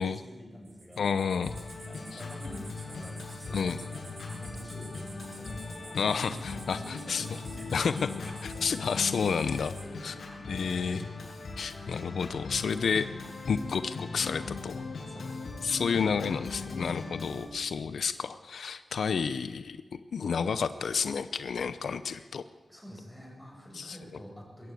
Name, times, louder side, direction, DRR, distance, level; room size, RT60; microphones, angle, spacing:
voice 1, 0.0-1.0 1.9-8.1 8.5-8.7 9.5-11.2 15.0-15.5 15.8-16.0 16.5-16.6 17.1-17.2 22.7-24.7, equal, 5° left, -1 dB, 7.1 m, -48 dB
sound 1, 0.7-9.9, right 3 dB, 50° right, 2.8 m, -51 dB
voice 2, 1.0-1.5 3.5-3.8 6.0-7.2 7.7-7.9 8.4-9.8 10.0-10.1 10.5-11.0 11.6-13.1 13.5-14.8 15.6-22.4 23.8-24.0, left 6 dB, 90° left, 12 dB, 0.7 m, -30 dB
Organ, 1.4-17.4, left 4 dB, 70° left, 6.7 m, -39 dB
21.5 x 15.5 x 8.4 m, 1.4 s
wide cardioid pair, 135°, 0 cm